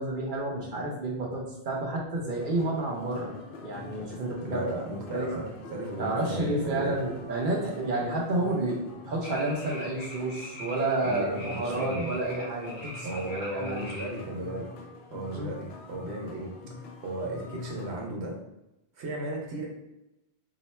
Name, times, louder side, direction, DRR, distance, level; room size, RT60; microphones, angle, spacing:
voice 1, 0.0-4.6 5.1-5.4 6.0-13.8 15.3-15.5, right 2 dB, 55° right, -1 dB, 0.9 m, -30 dB
sound 1, 2.4-18.0, left 4 dB, 75° left, 0.9 m, -46 dB
voice 2, 4.4-5.5 5.7-7.0 11.0-12.1 13.0-14.7 15.1-18.4 19.0-19.7, right 1 dB, 90° right, 0 dB, 1.1 m, -35 dB
sound 2, 9.2-14.2, left 2 dB, 30° left, 0.7 m, -42 dB
2.8 x 2.2 x 4.1 m, 0.90 s
omnidirectional pair, 1.1 m